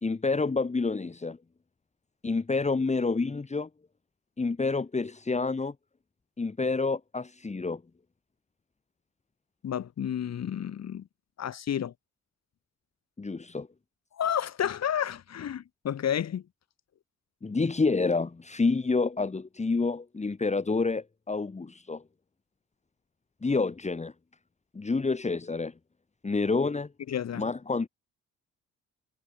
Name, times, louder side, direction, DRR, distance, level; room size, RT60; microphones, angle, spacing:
voice 1, 0.0-1.4 2.2-3.7 4.4-5.7 6.4-7.8 13.2-13.7 17.4-22.0 23.4-24.1 24.7-25.7 26.2-26.9 27.3-27.9, left 3 dB, 25° left, 2.7 m, -28 dB
voice 2, 9.6-11.0 11.4-11.9 14.2-16.4 27.1-27.5, left 9 dB, 60° left, 3.6 m, -31 dB
cardioid pair, 90°, 30 cm